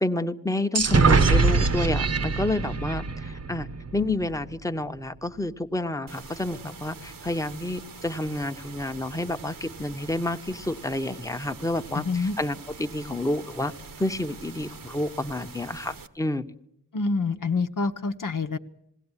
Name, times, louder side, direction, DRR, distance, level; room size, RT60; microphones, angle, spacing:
voice 1, 0.0-13.7 14.0-16.4, left 1 dB, 10° left, 8 dB, 0.9 m, -29 dB
sound 1, 0.7-4.4, right 4 dB, 50° right, 0.9 m, -23 dB
sound 2, 6.1-16.1, right 5 dB, 90° right, 1.3 m, -44 dB
voice 2, 11.9-12.4 16.9-18.6, left 4 dB, 75° left, 5 dB, 1.0 m, -26 dB
21.0 x 17.0 x 9.8 m, 0.77 s
wide cardioid pair, 110°, 33 cm